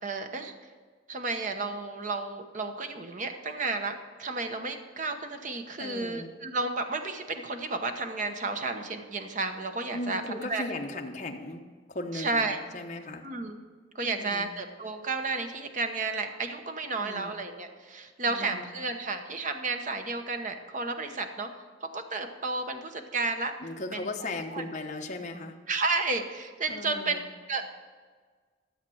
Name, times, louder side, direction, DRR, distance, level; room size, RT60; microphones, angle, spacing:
voice 1, 0.0-0.5 1.1-10.2 10.5-10.6 12.1-12.6 13.2-13.6 13.9-21.5 21.8-23.5 23.9-24.6 25.7-27.8, right 3 dB, 45° right, 6 dB, 0.9 m, -32 dB
voice 2, 5.8-6.3 9.9-11.6 11.9-13.2 14.0-14.5 17.0-17.3 18.3-18.6 23.6-25.5 26.7-27.2, left 2 dB, 40° left, 3 dB, 1.0 m, -37 dB
13.5 x 7.5 x 6.2 m, 1.5 s
head